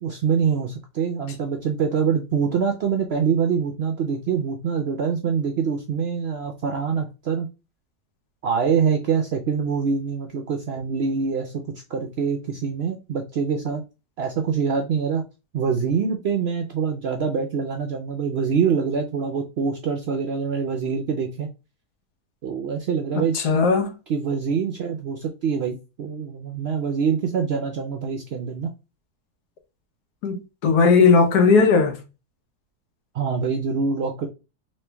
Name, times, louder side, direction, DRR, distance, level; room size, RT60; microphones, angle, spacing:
voice 1, 0.0-7.5 8.4-11.6 11.9-13.8 14.2-15.2 15.5-21.5 22.4-23.4 24.1-28.7 33.1-34.3, right 6 dB, 70° right, 0.6 m, -25 dB
voice 2, 23.3-23.9 30.2-32.0, left 4 dB, 90° left, 1.4 m, -17 dB
3.1 x 3.1 x 3.3 m
omnidirectional pair, 1.6 m